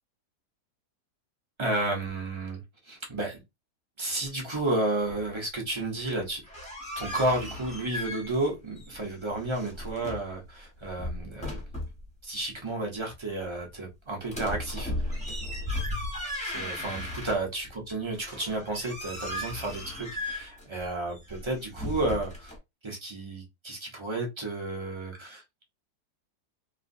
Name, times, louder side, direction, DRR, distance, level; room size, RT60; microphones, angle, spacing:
voice 1, 1.6-2.6 2.8-3.4 4.0-6.4 7.0-11.6 12.2-14.9 15.2-15.4 16.4-22.5 22.8-25.6, right 2 dB, 25° right, 0.6 m, -32 dB
sound 1, 6.3-8.5 8.8-10.3 10.8-12.0 14.3-17.7 18.1-22.6, left 1 dB, 5° left, 0.9 m, -36 dB
3.2 x 2.4 x 2.6 m
omnidirectional pair, 1.8 m